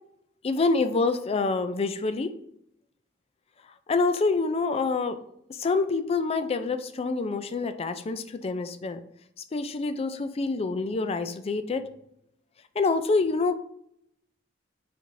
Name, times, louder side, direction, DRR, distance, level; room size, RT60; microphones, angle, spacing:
voice 1, 0.4-2.3 3.9-5.2 5.5-9.0 9.5-11.9 12.8-13.5, left 3 dB, 30° left, 10 dB, 0.3 m, -26 dB
4.6 x 4.2 x 2.6 m, 0.74 s
head